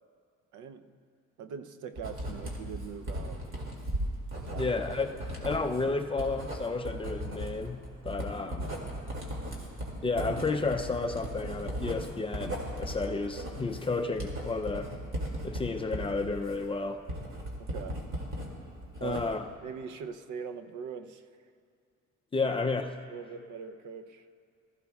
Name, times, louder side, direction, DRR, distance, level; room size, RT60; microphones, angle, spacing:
voice 1, 0.5-1.0 1.4-3.7 4.3-4.8 5.5-5.6 17.6-18.0 19.0-19.2 19.6-21.2 22.4-22.5 23.1-24.2, right 7 dB, 75° right, 8 dB, 0.6 m, -42 dB
Writing, 2.0-18.5 18.8-19.5, equal, 45° right, 2.4 m, -37 dB
voice 2, 4.6-8.7 10.0-14.9 15.4-17.0 19.0-19.5 22.3-23.0, left 3 dB, 20° left, 5 dB, 0.4 m, -32 dB
19.5 x 14.5 x 2.3 m, 2.3 s
cardioid pair, 145°, 30 cm